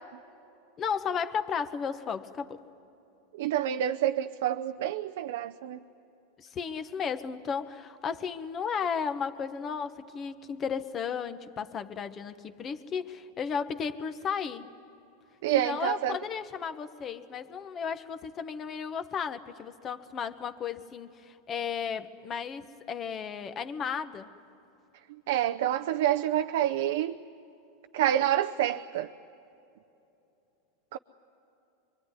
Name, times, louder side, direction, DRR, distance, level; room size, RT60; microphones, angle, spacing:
voice 1, 0.8-2.6 6.4-14.7 15.5-24.3, left 6 dB, 30° left, 1.3 m, -34 dB
voice 2, 3.4-5.8 15.4-16.2 25.3-27.2 27.9-29.1 30.9-31.0, right 12 dB, 75° right, 0.6 m, -28 dB
25.5 x 24.0 x 9.8 m
hypercardioid pair, 115°, 0 cm